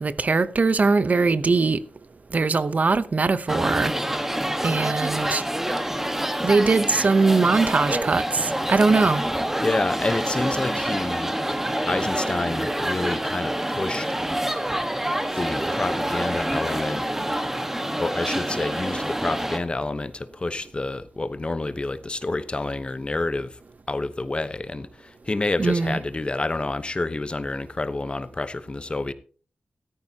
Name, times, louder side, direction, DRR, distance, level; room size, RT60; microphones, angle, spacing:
voice 1, 0.0-1.8 2.3-3.9 4.6-5.4 6.4-9.2 25.6-26.0, right 4 dB, 45° right, 0.8 m, -21 dB
sound 1, 3.5-19.6, right 1 dB, 10° right, 1.3 m, -27 dB
voice 2, 9.6-14.1 15.3-17.0 18.0-23.6 23.9-29.1, left 2 dB, 30° left, 0.9 m, -28 dB
14.5 x 13.5 x 2.9 m
wide cardioid pair, 125°, 4 cm